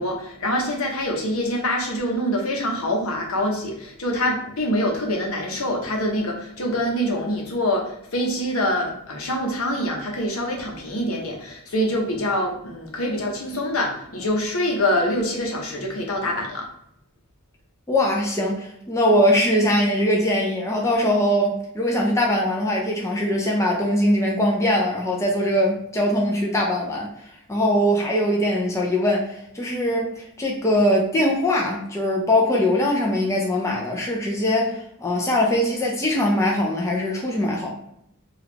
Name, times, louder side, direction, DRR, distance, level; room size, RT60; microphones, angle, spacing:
voice 1, 0.0-16.7, left 1 dB, 75° left, 1 dB, 0.8 m, -25 dB
voice 2, 17.9-37.7, left 1 dB, 15° left, -2 dB, 0.5 m, -21 dB
3.0 x 2.4 x 3.4 m, 0.77 s
head